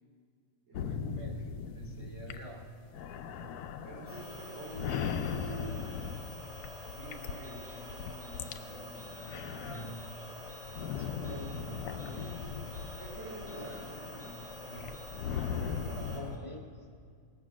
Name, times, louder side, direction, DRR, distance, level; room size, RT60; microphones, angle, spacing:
sound 1, 0.7-8.6 9.0-16.4, left 7 dB, 85° left, 1.2 m, -39 dB
voice 1, 0.7-2.7 9.3-10.2 10.9-12.7 14.6-15.0 15.4-15.7 16.1-16.9, right 2 dB, 25° left, 1 dB, 1.1 m, -47 dB
voice 2, 3.2-6.1 6.8-9.7 11.0-11.7 13.0-14.8 15.2-16.3, right 2 dB, 55° right, -7 dB, 4.5 m, -48 dB
sound 2, 4.1-16.2, left 1 dB, ahead, 3.8 m, -46 dB
sound 3, 7.4-7.7 8.2-8.5 9.0-9.3 9.7-10.0 10.5-10.8 11.2-11.5 12.0-12.3 12.7-13.0 13.5-13.8 14.2-14.5 14.9-15.1, right 3 dB, 65° left, 2.1 m, -60 dB
17.5 x 7.9 x 6.1 m, 2.2 s
omnidirectional pair, 1.6 m